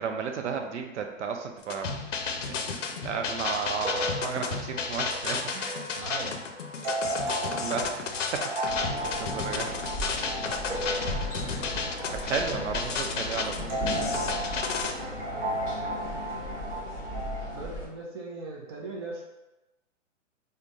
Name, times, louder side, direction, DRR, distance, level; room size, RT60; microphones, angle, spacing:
voice 1, 0.0-5.8 7.5-9.8 12.1-13.7, right 6 dB, 70° right, 4 dB, 0.7 m, -34 dB
sound 1, 1.6-14.9, left 5 dB, 75° left, 0.6 m, -33 dB
sound 2, 3.8-17.6, right 1 dB, 40° right, 0.9 m, -35 dB
voice 2, 5.9-6.4 15.0-15.9 17.5-19.2, right 3 dB, 20° right, -2 dB, 0.4 m, -39 dB
sound 3, 8.7-17.9, left 1 dB, 15° left, 1.0 m, -37 dB
3.3 x 2.2 x 3.8 m, 1.0 s
hypercardioid pair, 135°, 37 cm